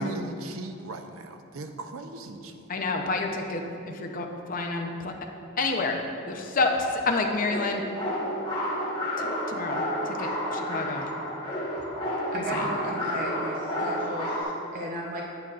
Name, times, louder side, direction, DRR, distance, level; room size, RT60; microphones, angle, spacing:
voice 1, 0.0-2.7, right 2 dB, 85° right, 6 dB, 0.6 m, -37 dB
voice 2, 2.7-5.1 5.6-6.0 6.3-7.8 9.2-11.1 12.3-12.7, left 3 dB, 40° left, 2 dB, 0.6 m, -29 dB
sound 1, 7.4-14.4, equal, 20° left, 1.3 m, -30 dB
voice 3, 12.3-15.2, right 1 dB, 40° right, -2 dB, 0.6 m, -35 dB
9.0 x 8.8 x 2.4 m, 2.6 s
head